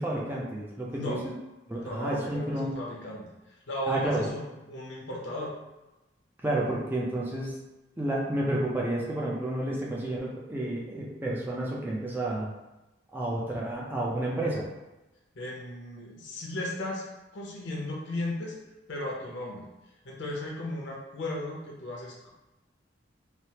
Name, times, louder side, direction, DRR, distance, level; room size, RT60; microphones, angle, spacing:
voice 1, 0.0-1.3 1.7-2.7 3.9-4.3 6.4-7.5 8.0-12.5 13.1-14.7, right 1 dB, 10° right, -4 dB, 0.4 m, -30 dB
voice 2, 0.9-1.2 1.8-5.5 15.3-17.0 17.3-18.5 18.9-19.6 20.0-22.3, left 1 dB, 70° left, -2 dB, 0.7 m, -36 dB
3.2 x 2.1 x 2.8 m, 1.0 s
head